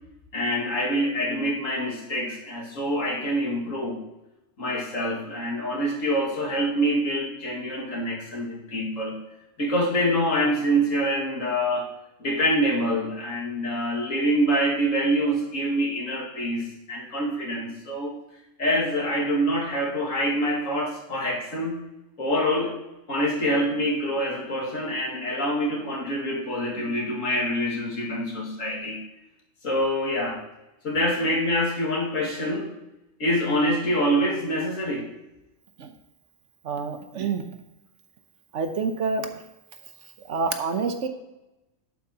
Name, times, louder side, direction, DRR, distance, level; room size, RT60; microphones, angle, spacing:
voice 1, 0.3-4.0 4.6-9.2 9.6-11.9 12.2-18.1 18.6-21.8 22.2-22.7 23.1-29.0 29.6-30.4 30.8-32.7 33.2-35.1, equal, 75° left, -3 dB, 2.4 m, -25 dB
voice 2, 36.6-37.4 38.5-39.3 40.3-41.1, right 4 dB, 65° right, 7 dB, 1.2 m, -27 dB
11.0 x 8.7 x 2.9 m, 0.97 s
omnidirectional pair, 1.4 m